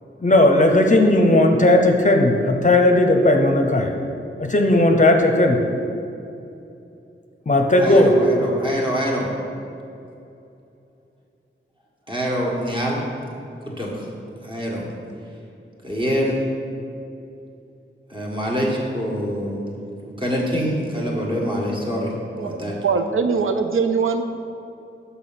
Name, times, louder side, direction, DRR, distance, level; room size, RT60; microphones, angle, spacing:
voice 1, 0.2-3.9 4.4-5.6 7.5-8.1, left 1 dB, 35° left, 3 dB, 0.7 m, -16 dB
voice 2, 7.8-9.3 12.1-13.1 13.8-14.1 14.4-14.9 15.8-16.4 18.1-19.6 20.0-22.1 22.4-22.8, equal, 25° right, -3 dB, 1.6 m, -25 dB
voice 3, 22.4-24.2, right 5 dB, 75° right, 7 dB, 0.4 m, -22 dB
6.3 x 5.7 x 5.7 m, 2.7 s
wide cardioid pair, 80°, 21 cm